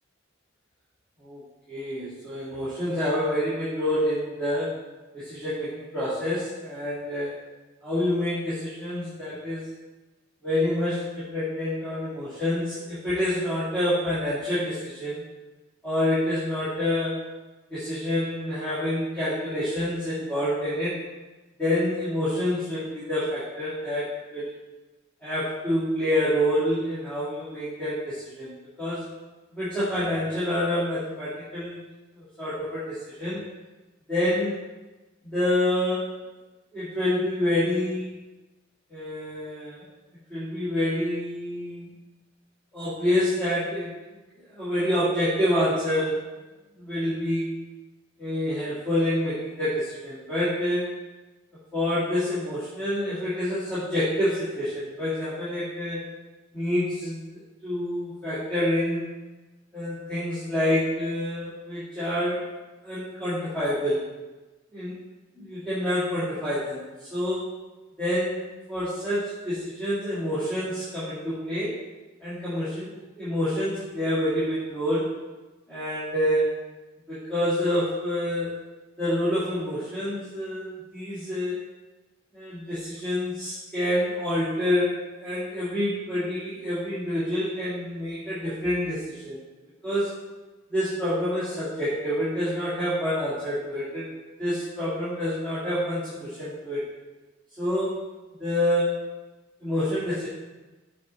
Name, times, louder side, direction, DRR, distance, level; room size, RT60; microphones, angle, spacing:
voice 1, 1.7-4.8 5.1-7.3 7.8-9.7 10.4-15.2 15.8-17.3 17.7-21.0 21.6-24.5 25.2-29.1 29.5-31.8 32.1-33.4 34.1-34.6 35.2-36.2 36.7-38.1 38.9-39.8 40.3-41.9 42.7-43.9 44.5-46.3 46.8-47.6 48.2-50.9 51.7-56.0 56.5-59.1 59.7-62.4 62.8-64.0 64.7-64.9 65.4-67.4 68.0-71.8 72.2-72.9 73.2-75.1 75.7-76.6 77.1-78.5 79.0-81.6 82.3-84.9 85.2-89.4 89.8-90.2 90.7-94.1 94.4-96.8 97.6-98.0 98.4-99.0 99.6-100.3, left 1 dB, 5° left, -13 dB, 2.1 m, -27 dB
7.2 x 4.2 x 4.2 m, 1.2 s
head